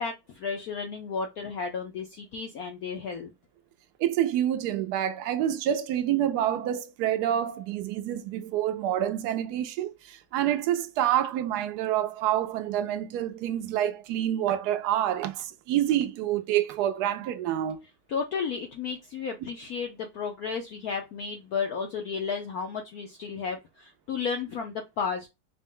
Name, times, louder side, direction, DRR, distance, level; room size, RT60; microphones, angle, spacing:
voice 1, 0.0-3.3 18.1-25.3, left 5 dB, 75° left, 0.8 m, -33 dB
voice 2, 4.0-17.8, right 11 dB, 85° right, 0.8 m, -27 dB
4.9 x 2.1 x 3.7 m
omnidirectional pair, 2.3 m